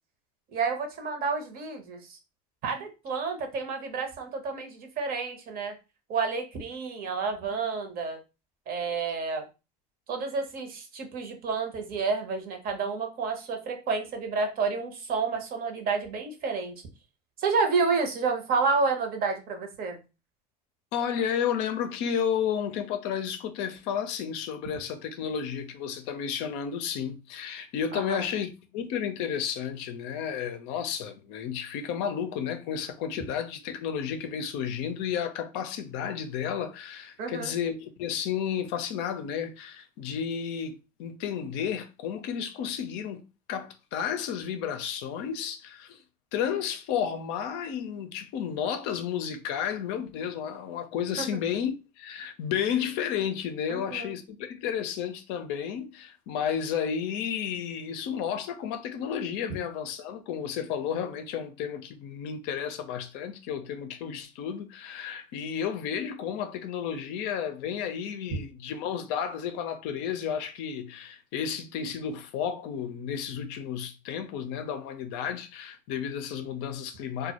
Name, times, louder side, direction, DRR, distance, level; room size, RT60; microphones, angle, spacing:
voice 1, 0.5-2.2 2.6-5.7 6.1-8.2 8.7-9.4 10.1-16.8 17.4-20.0 27.9-28.2 37.2-37.5 51.2-51.3 53.7-54.1, right 4 dB, 45° right, 0.8 m, -30 dB
voice 2, 20.9-43.2 43.5-46.0 46.3-77.3, left 8 dB, 60° left, 0.5 m, -32 dB
2.2 x 2.0 x 2.8 m
hypercardioid pair, 90°, 21 cm